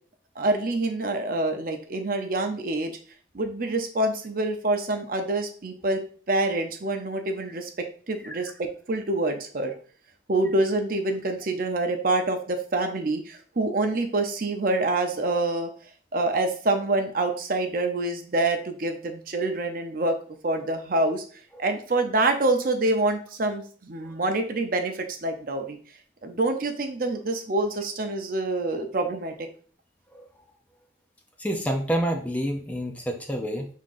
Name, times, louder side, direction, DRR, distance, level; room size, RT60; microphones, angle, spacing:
voice 1, 0.4-3.0 3.3-6.0 6.3-9.7 10.3-15.7 16.1-20.2 20.4-21.2 21.6-25.8 26.2-29.5, right 2 dB, 50° right, 5 dB, 0.6 m, -26 dB
voice 2, 31.4-33.7, equal, 10° left, 3 dB, 0.5 m, -28 dB
5.8 x 3.6 x 2.5 m, 0.43 s
head